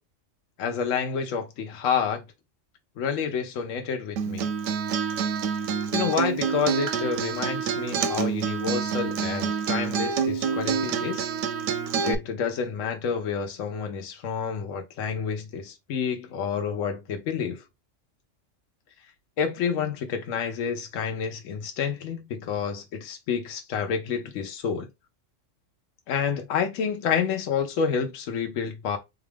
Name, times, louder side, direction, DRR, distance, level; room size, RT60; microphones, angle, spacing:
voice 1, 0.6-2.2 3.0-4.5 5.6-11.3 12.0-17.6 19.4-24.9 26.1-29.0, left 6 dB, 85° left, 1.1 m, -29 dB
Acoustic guitar, 4.2-12.1, right 6 dB, 90° right, 1.0 m, -27 dB
4.1 x 2.4 x 3.3 m
omnidirectional pair, 1.3 m